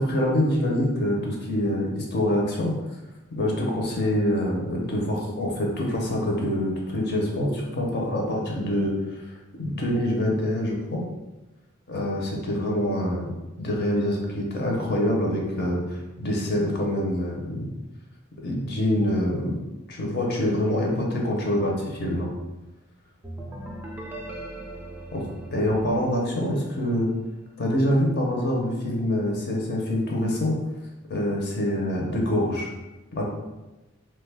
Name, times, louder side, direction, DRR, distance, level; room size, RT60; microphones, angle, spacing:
voice 1, 0.0-2.7 3.3-11.0 11.9-13.3 13.6-17.7 18.4-19.6 19.9-22.3 25.1-25.2 25.5-27.1 27.6-30.6 31.1-32.7 33.1-33.2, left 1 dB, 50° left, -1 dB, 0.6 m, -25 dB
sound 1, 23.2-26.9, right 1 dB, 10° right, 0.4 m, -39 dB
2.9 x 2.2 x 3.3 m, 1.1 s
head